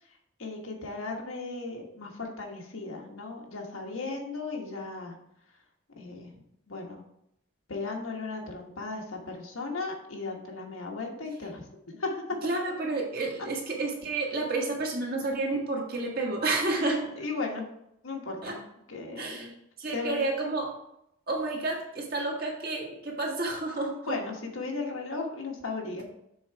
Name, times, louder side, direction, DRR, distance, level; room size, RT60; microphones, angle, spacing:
voice 1, 0.1-5.1 6.0-6.3 6.7-7.0 7.7-12.2 17.2-17.7 18.0-18.6 18.9-19.5 19.9-20.2 23.9-26.0, left 3 dB, 90° left, 1 dB, 1.4 m, -36 dB
voice 2, 12.4-17.1 18.4-18.5 19.2-20.7 21.3-24.2, right 2 dB, 45° right, -1 dB, 1.5 m, -30 dB
7.1 x 3.9 x 4.6 m, 0.79 s
head